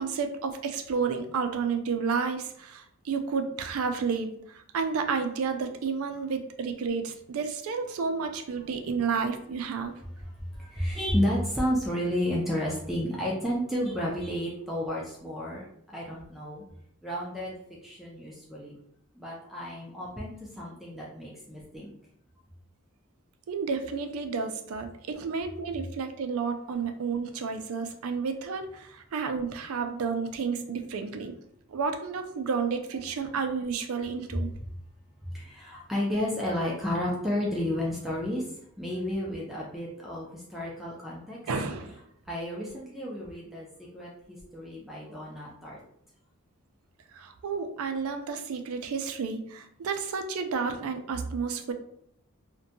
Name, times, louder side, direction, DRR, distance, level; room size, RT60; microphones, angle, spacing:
voice 1, 0.0-9.9 23.5-31.3 31.7-34.5 41.5-42.0 47.1-51.7, right 5 dB, 75° right, 7 dB, 0.4 m, -31 dB
voice 2, 10.2-16.6 17.0-18.7 19.1-21.9 35.3-41.4 42.3-45.8, equal, ahead, -5 dB, 0.3 m, -32 dB
2.6 x 2.2 x 2.6 m, 0.71 s
head